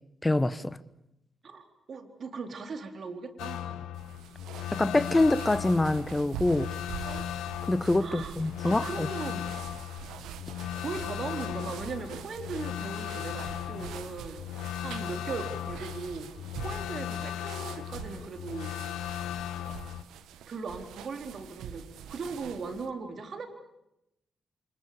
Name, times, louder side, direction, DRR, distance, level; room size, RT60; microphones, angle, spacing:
voice 1, 0.2-0.8 4.7-6.7 7.6-9.1, left 2 dB, 20° left, 1.5 m, -25 dB
voice 2, 1.4-3.8 8.0-8.3 8.6-9.5 10.7-16.3 16.6-18.7 20.5-23.5, right 4 dB, 60° right, 3.9 m, -38 dB
sound 1, 3.4-20.0, left 11 dB, 80° left, 0.9 m, -37 dB
sound 2, 3.9-22.9, right 9 dB, 80° right, 1.4 m, -45 dB
28.5 x 26.5 x 7.0 m
hypercardioid pair, 40°, 0 cm